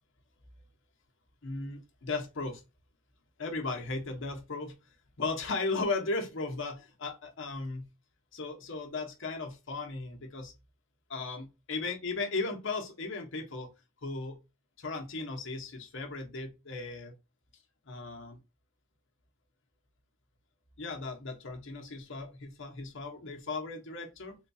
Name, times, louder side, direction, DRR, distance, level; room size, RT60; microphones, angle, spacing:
voice 1, 1.4-2.6 3.4-4.7 5.2-7.8 8.3-10.5 11.1-13.7 14.0-14.4 14.8-17.1 17.9-18.4 20.8-24.3, left 3 dB, 65° left, 0.9 m, -36 dB
3.7 x 2.3 x 2.6 m
head